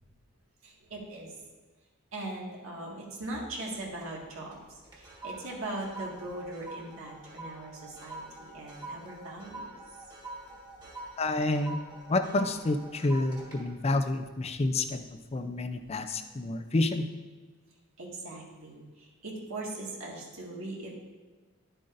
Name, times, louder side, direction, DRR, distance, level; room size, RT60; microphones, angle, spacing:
voice 1, 0.6-1.3 2.1-9.7 15.7-15.8 16.2-16.3 18.0-20.9, right 2 dB, 75° right, -3 dB, 1.9 m, -40 dB
sound 1, 3.9-4.2 4.5-15.1 15.5-15.8, right 2 dB, 20° right, 1.6 m, -46 dB
voice 2, 11.2-11.8 12.1-15.0 15.3-17.0, left 2 dB, 30° left, 8 dB, 0.5 m, -29 dB
11.0 x 7.7 x 2.6 m, 1.3 s
head